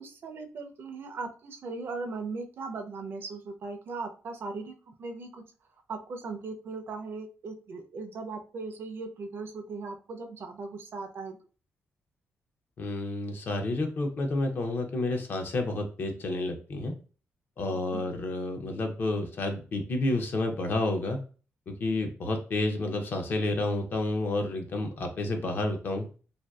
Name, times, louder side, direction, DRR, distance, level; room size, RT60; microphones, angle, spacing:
voice 1, 0.0-5.4 5.9-11.4 17.7-18.0, right 4 dB, 55° right, 5 dB, 0.4 m, -38 dB
voice 2, 12.8-16.9 17.6-21.2 21.7-26.1, left 2 dB, 45° left, 4 dB, 0.5 m, -30 dB
2.5 x 2.2 x 2.2 m, 0.37 s
wide cardioid pair, 155°, 5 cm